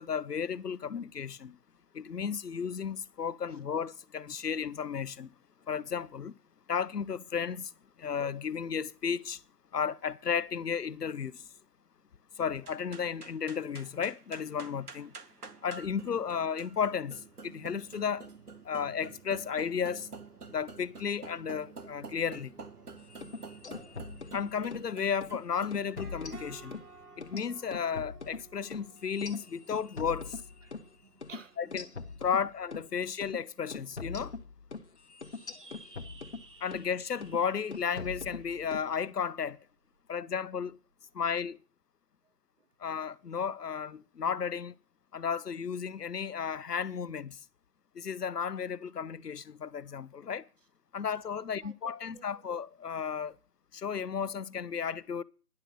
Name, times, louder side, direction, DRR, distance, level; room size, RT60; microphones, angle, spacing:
voice 1, 0.0-1.6 1.9-5.3 5.7-6.3 6.7-7.7 8.0-9.4 9.7-11.5 12.4-15.1 15.6-18.3 18.6-20.1 20.5-22.5 24.3-26.8 27.2-30.4 31.6-31.9 32.2-34.3 36.6-39.6 40.1-40.8 41.1-41.6 42.8-44.7 45.1-47.4 47.9-50.5 50.9-53.4 53.7-55.2, left 7 dB, 80° left, 0.9 m, -33 dB
sound 1, 12.6-32.1, right 4 dB, 75° right, 1.8 m, -50 dB
sound 2, 23.1-24.9 25.2-25.4 25.7-26.9 27.2-30.9 31.2-31.4 31.7-32.9 33.2-33.4 33.7-36.9 37.2-37.5 37.7-38.9, left 4 dB, 45° left, 1.2 m, -42 dB
voice 2, 30.6-32.5 32.9-33.2 33.6-33.7 42.2-42.3 42.6-42.7 51.6-52.4, right 5 dB, 50° right, 1.2 m, -56 dB
sound 3, 35.2-40.0, right 3 dB, 35° right, 1.4 m, -57 dB
10.5 x 6.8 x 9.2 m
figure-of-eight pair, 170°, 47 cm